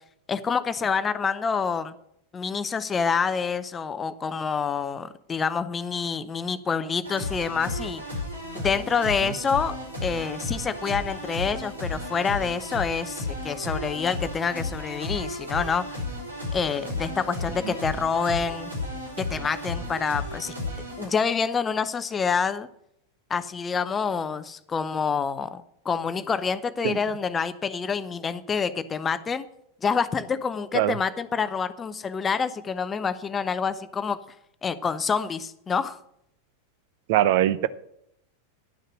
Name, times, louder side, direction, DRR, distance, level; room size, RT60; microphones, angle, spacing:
voice 1, 0.3-1.9 2.3-8.0 8.5-9.8 10.0-16.0 16.5-18.7 19.2-20.5 21.0-22.7 23.3-29.5 29.8-34.2 34.6-36.0, left 6 dB, 20° left, 14 dB, 0.6 m, -27 dB
sound 1, 7.0-21.1, left 2 dB, 80° right, 4.4 m, -33 dB
voice 2, 37.1-37.7, right 13 dB, 50° right, 16 dB, 0.5 m, -22 dB
11.0 x 6.5 x 7.6 m, 0.74 s
figure-of-eight pair, 90°, 0 cm